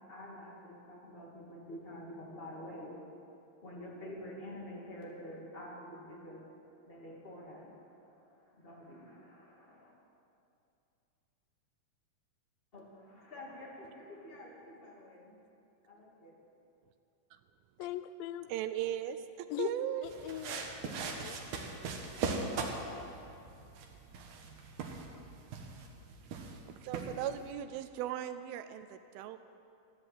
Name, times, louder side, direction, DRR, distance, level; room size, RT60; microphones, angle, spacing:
voice 1, 0.1-3.0 3.6-6.4 6.9-9.9 12.7-15.3 15.9-16.4, left 1 dB, 20° left, 1.9 m, -48 dB
voice 2, 17.8-18.5 19.5-19.7 20.0-21.4, left 12 dB, 85° left, 2.0 m, -40 dB
voice 3, 18.5-20.1 26.7-29.4, right 11 dB, 80° right, 2.3 m, -38 dB
sound 1, 20.0-27.5, right 4 dB, 60° right, 2.3 m, -40 dB
15.0 x 11.0 x 7.8 m
omnidirectional pair, 4.5 m